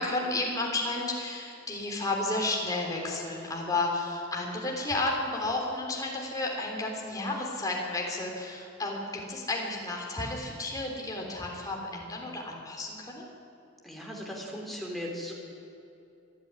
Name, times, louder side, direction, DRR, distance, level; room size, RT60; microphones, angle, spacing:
voice 1, 0.0-13.3, left 2 dB, 20° left, -1 dB, 3.6 m, -32 dB
voice 2, 13.8-15.3, equal, ahead, -2 dB, 3.5 m, -37 dB
26.5 x 10.5 x 9.8 m, 2.7 s
head